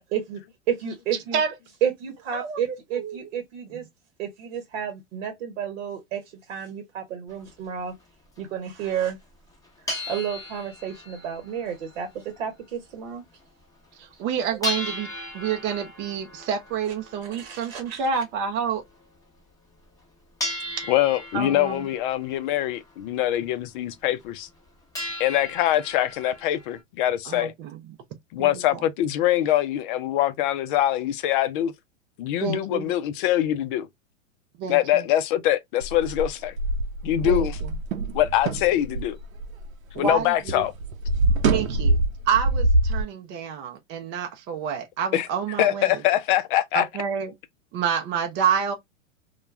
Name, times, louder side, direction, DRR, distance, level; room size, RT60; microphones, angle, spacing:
voice 1, 0.7-1.4 1.8-3.8 4.2-6.2 6.5-7.9 8.4-9.2 10.1-13.2 17.4-18.2, right 8 dB, 60° right, 0.9 m, -31 dB
voice 2, 2.3-3.3 3.7-3.8 14.0-15.1 15.3-18.8 21.3-21.9 27.3-27.8 28.4-28.8 32.4-32.9 34.6-35.1 37.2-37.7 39.9-40.6 41.5-42.0 42.3-45.9 46.7-47.3 47.7-48.7, right 7 dB, 30° right, 0.5 m, -28 dB
sound 1, 7.3-7.4 8.0-8.1 8.3-8.4 9.1-9.2 9.5-12.6 12.9-13.0 13.4-13.5 13.8-13.9 14.6-19.2 19.8-20.0 20.4-23.4 23.8-23.9 24.2-24.7 24.9-26.8, left 1 dB, 10° left, 0.9 m, -37 dB
voice 3, 20.9-24.5 25.2-27.5 28.3-31.7 32.2-33.9 34.7-36.5 37.0-37.6 38.1-39.2 40.0-40.7 45.1-45.3 45.6-46.9, left 13 dB, 45° left, 0.4 m, -23 dB
sound 2, 35.8-40.2 40.5-43.0, right 2 dB, 85° right, 0.7 m, -24 dB
2.2 x 2.2 x 3.1 m
hypercardioid pair, 110°, 39 cm